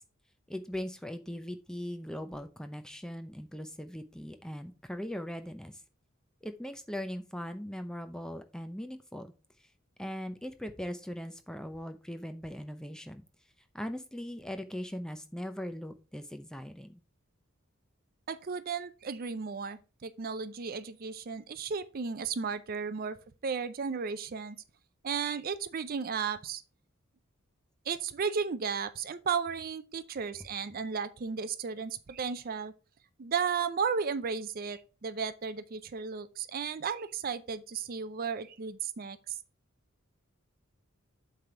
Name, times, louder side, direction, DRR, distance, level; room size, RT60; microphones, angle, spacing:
voice 1, 0.5-5.7 6.4-9.3 10.0-13.2 13.7-17.0, equal, 5° left, 0.6 m, -40 dB
voice 2, 18.3-23.2 23.4-24.6 25.0-26.6 27.9-32.7 33.2-39.4, right 6 dB, 45° right, 0.5 m, -34 dB
7.8 x 3.4 x 5.8 m
head